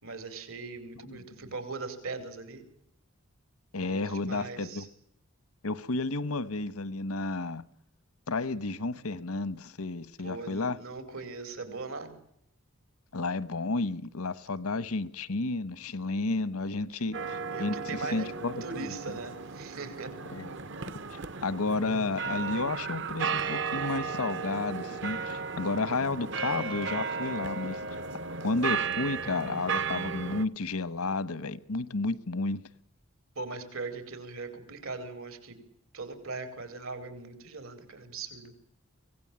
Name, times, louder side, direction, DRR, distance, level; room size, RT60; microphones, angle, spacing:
voice 1, 0.0-2.6 3.7-4.9 10.2-12.1 17.5-18.3 18.6-20.1 33.3-35.6 35.9-38.5, right 3 dB, 75° right, 4.9 m, -40 dB
voice 2, 3.7-4.8 5.6-7.6 8.3-10.8 13.1-19.2 20.3-20.6 21.1-27.8 28.4-32.6, left 3 dB, 85° left, 1.2 m, -32 dB
sound 1, 17.1-30.5, right 5 dB, 55° right, 0.9 m, -35 dB
25.0 x 17.5 x 8.8 m
head